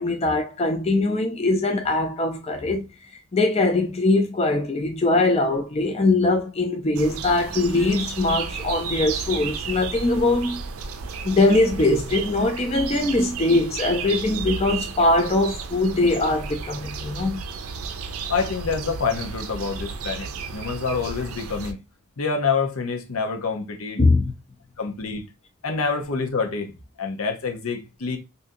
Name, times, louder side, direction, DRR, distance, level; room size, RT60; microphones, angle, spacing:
voice 1, 0.0-2.8 3.3-10.6 11.2-17.4 24.0-24.3, left 2 dB, 30° left, 0.4 m, -21 dB
sound 1, 7.0-21.7, right 5 dB, 75° right, 0.5 m, -33 dB
voice 2, 18.3-21.8 22.2-24.0 24.8-25.3 25.6-28.2, left 5 dB, 75° left, 0.8 m, -27 dB
2.7 x 2.7 x 3.6 m
head